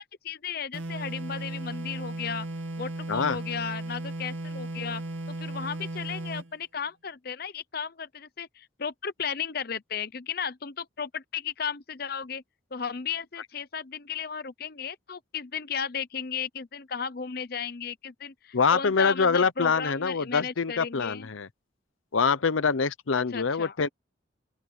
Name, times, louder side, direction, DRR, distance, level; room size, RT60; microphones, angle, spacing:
voice 1, 0.0-2.5 2.8-5.0 5.3-12.4 12.7-21.3 23.1-23.8, left 6 dB, 50° left, 0.7 m, -35 dB
sound 1, 0.7-6.5, right 1 dB, 85° right, 2.4 m, -35 dB
voice 2, 18.5-21.5 22.1-23.9, left 5 dB, 85° left, 0.7 m, -25 dB
open air
head